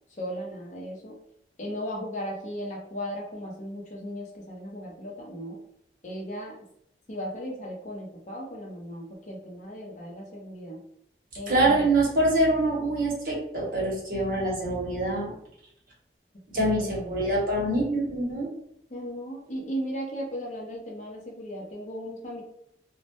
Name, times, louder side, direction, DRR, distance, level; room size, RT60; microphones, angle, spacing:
voice 1, 0.1-1.2 1.6-5.6 6.0-6.6 7.1-10.8 11.4-11.9 16.5-17.3 18.9-22.4, equal, 40° left, -1 dB, 0.5 m, -36 dB
voice 2, 11.5-15.3 16.5-18.5, right 1 dB, 50° right, -3 dB, 0.8 m, -25 dB
2.1 x 2.1 x 2.8 m, 0.73 s
head